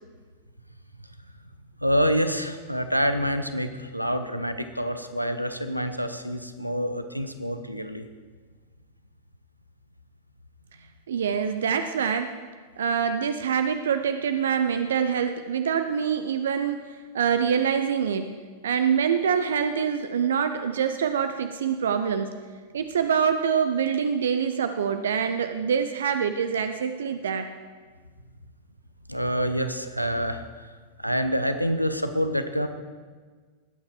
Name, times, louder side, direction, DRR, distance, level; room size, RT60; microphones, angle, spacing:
voice 1, 1.8-8.0 29.1-30.7 31.0-32.7, equal, 90° right, 9 dB, 0.8 m, -27 dB
voice 2, 11.1-12.4 12.8-16.9 17.1-18.3 18.6-22.3 22.7-27.5, right 7 dB, 65° right, 8 dB, 0.6 m, -25 dB
20.0 x 8.5 x 4.6 m, 1.5 s
figure-of-eight pair, 90°, 0 cm